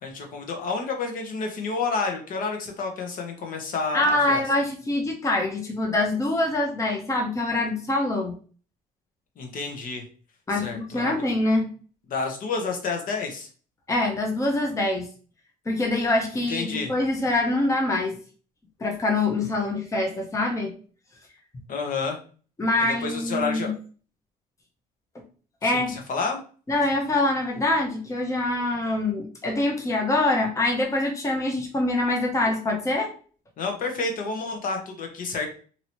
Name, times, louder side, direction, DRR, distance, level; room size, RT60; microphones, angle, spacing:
voice 1, 0.0-4.4 9.4-10.0 10.5-11.3 12.1-13.5 16.5-16.9 21.7-22.2 22.8-23.7 25.6-26.4 33.6-35.5, left 4 dB, 55° left, 2 dB, 0.9 m, -30 dB
voice 2, 3.9-8.4 10.5-11.7 13.9-15.1 15.7-18.2 18.8-20.7 22.6-23.7 25.6-25.9 26.7-33.1, left 2 dB, 20° left, 1 dB, 0.7 m, -24 dB
2.9 x 2.7 x 2.9 m, 0.40 s
cardioid pair, 110°, 17 cm